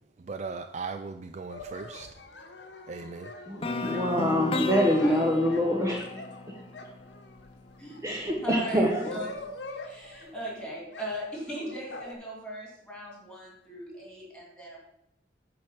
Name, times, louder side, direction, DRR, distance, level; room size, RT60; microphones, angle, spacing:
voice 1, 0.3-2.1 2.9-3.3, right 4 dB, 40° right, 0.3 m, -37 dB
sound 1, 1.5-7.4 7.9-10.5 10.9-12.1, left 3 dB, 70° left, 1.1 m, -43 dB
voice 2, 3.5-6.0 8.0-9.0, equal, 15° right, 0.9 m, -25 dB
sound 2, 3.6-7.6, left 2 dB, 30° left, 0.5 m, -34 dB
voice 3, 4.8-5.2 7.8-8.1 8.4-9.4 9.8-14.9, equal, 5° left, 2.8 m, -39 dB
9.7 x 4.8 x 5.8 m
head